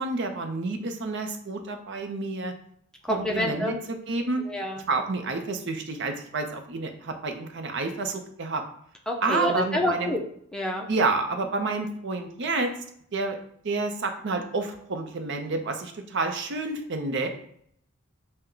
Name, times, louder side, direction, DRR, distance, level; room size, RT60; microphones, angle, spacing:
voice 1, 0.0-2.5 3.1-4.5 4.9-8.6 9.2-10.1 10.9-12.7 13.1-13.4 13.6-17.3, right 3 dB, 55° right, 5 dB, 0.6 m, -29 dB
voice 2, 3.0-3.8 4.4-4.8 9.1-10.2 10.5-10.9, left 1 dB, 5° left, 0 dB, 0.6 m, -28 dB
5.7 x 2.2 x 3.8 m, 0.66 s
head